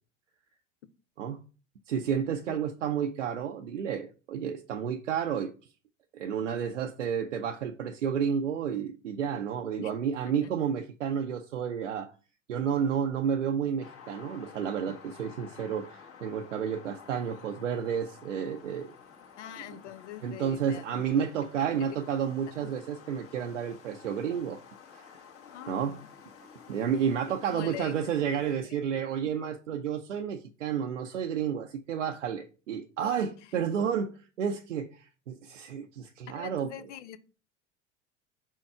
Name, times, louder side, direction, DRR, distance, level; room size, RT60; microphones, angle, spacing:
voice 1, 1.9-5.5 6.1-12.1 12.5-18.9 20.2-24.6 24.9-25.1 25.7-26.0 26.7-36.7, right 8 dB, 85° right, 0.6 m, -31 dB
sound 1, 13.8-28.6, left 6 dB, 40° left, 1.6 m, -52 dB
voice 2, 19.4-21.3 21.7-21.8 22.6-22.7 25.5-26.1 26.6-26.9 27.3-29.5 33.4-33.6 36.3-37.2, left 11 dB, 70° left, 0.7 m, -45 dB
5.2 x 4.4 x 4.6 m
figure-of-eight pair, 70°, 36 cm